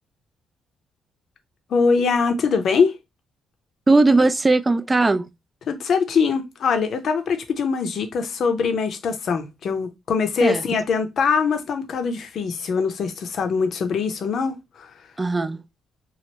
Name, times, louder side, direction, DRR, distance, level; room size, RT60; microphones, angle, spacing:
voice 1, 1.7-3.0 5.7-14.9, left 5 dB, 60° left, 0.6 m, -22 dB
voice 2, 3.9-5.3 10.4-10.6 15.2-15.6, right 3 dB, 20° right, 0.3 m, -18 dB
3.1 x 2.5 x 2.8 m
cardioid pair, 90°, 0 cm